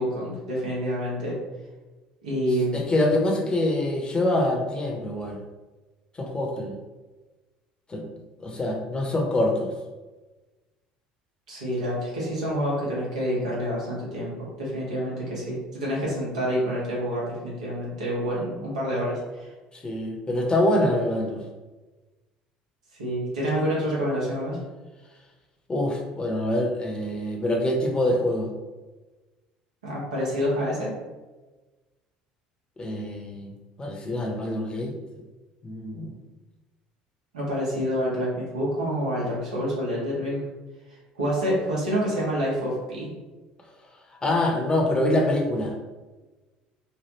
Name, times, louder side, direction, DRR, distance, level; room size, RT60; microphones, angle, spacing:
voice 1, 0.0-1.4 2.2-2.8 11.5-19.5 23.0-24.6 29.8-30.9 37.3-40.4 41.1-43.1, equal, 85° right, -6 dB, 1.2 m, -27 dB
voice 2, 2.7-5.4 6.2-6.8 7.9-8.1 8.4-9.7 19.7-21.4 25.7-28.5 32.8-34.9 35.6-36.1 44.2-45.7, left 1 dB, 25° left, 0 dB, 0.8 m, -25 dB
3.2 x 2.4 x 2.9 m, 1.2 s
hypercardioid pair, 65°, 4 cm